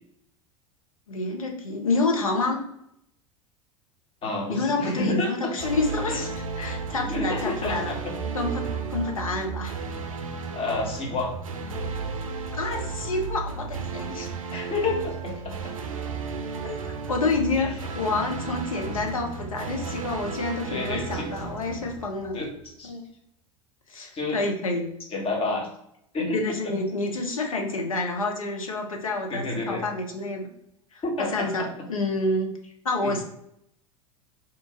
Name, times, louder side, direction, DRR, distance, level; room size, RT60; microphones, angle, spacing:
voice 1, 1.1-2.6 4.5-8.0 8.3-9.8 12.5-14.3 16.6-22.4 22.8-23.1 23.9-24.9 26.3-30.5 30.9-33.2, left 3 dB, 85° left, 2 dB, 0.7 m, -28 dB
voice 2, 4.2-5.5 6.1-6.2 6.9-8.2 10.5-11.3 14.5-15.5 20.7-21.3 22.3-22.9 24.1-24.4 25.1-25.7 26.1-26.8 29.3-29.8 31.0-31.7 33.0-33.2, left 2 dB, 35° left, -1 dB, 1.2 m, -29 dB
sound 1, 5.6-22.6, right 5 dB, 85° right, 0.4 m, -34 dB
3.0 x 2.5 x 3.6 m, 0.76 s
figure-of-eight pair, 80°, 17 cm